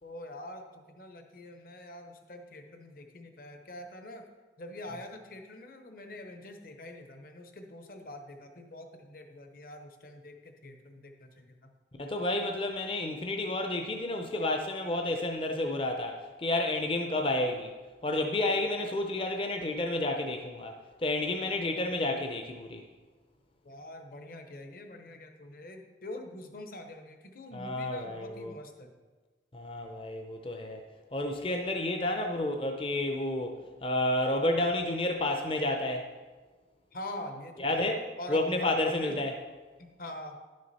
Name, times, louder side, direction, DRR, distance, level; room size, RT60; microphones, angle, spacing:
voice 1, 0.0-4.3 4.6-11.7 23.6-28.9 36.9-37.9 38.2-39.2 39.8-40.4, left 1 dB, 50° left, 6 dB, 0.9 m, -45 dB
voice 2, 12.0-17.7 18.0-20.7 21.0-22.8 27.5-28.6 29.5-30.8 31.1-36.1 37.6-38.0 38.3-39.3, left 1 dB, 30° left, 4 dB, 0.6 m, -30 dB
11.0 x 6.4 x 4.1 m, 1.3 s
head